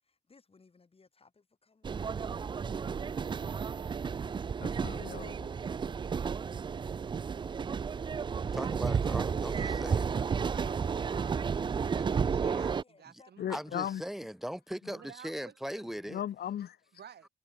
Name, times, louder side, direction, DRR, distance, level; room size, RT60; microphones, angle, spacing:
voice 1, 0.0-2.4 12.4-13.9, left 4 dB, 30° left, 5.3 m, -62 dB
sound 1, 1.8-12.8, right 6 dB, 25° right, 0.3 m, -32 dB
voice 2, 4.6-5.6 13.4-14.0 16.1-16.8, left 10 dB, 55° left, 0.7 m, -37 dB
voice 3, 8.5-10.1 13.5-16.2, equal, ahead, 1.8 m, -39 dB
voice 4, 9.3-13.5 14.9-15.9 16.9-17.3, right 8 dB, 55° right, 2.3 m, -53 dB
cardioid pair, 90°, 20 cm